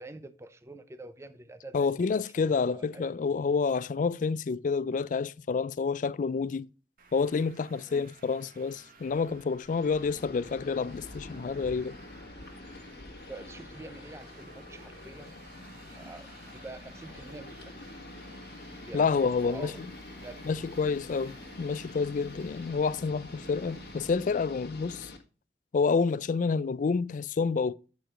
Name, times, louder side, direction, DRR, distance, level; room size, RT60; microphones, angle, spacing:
voice 1, 0.0-1.9 2.4-3.1 7.9-8.1 12.9-13.0 13.3-15.3 15.9-17.8 18.7-19.1 19.4-19.8 20.2-20.7 22.3-22.4, right 2 dB, 15° right, 0.5 m, -46 dB
voice 2, 1.7-6.7 7.1-12.0 18.9-19.7 20.5-25.1 25.7-27.7, left 5 dB, 45° left, 0.3 m, -28 dB
Traffic noise roadway noise, 7.0-24.1, right 3 dB, 55° right, 1.3 m, -55 dB
sound 1, 9.7-25.2, left 2 dB, 60° left, 1.6 m, -46 dB
8.8 x 4.6 x 5.0 m
head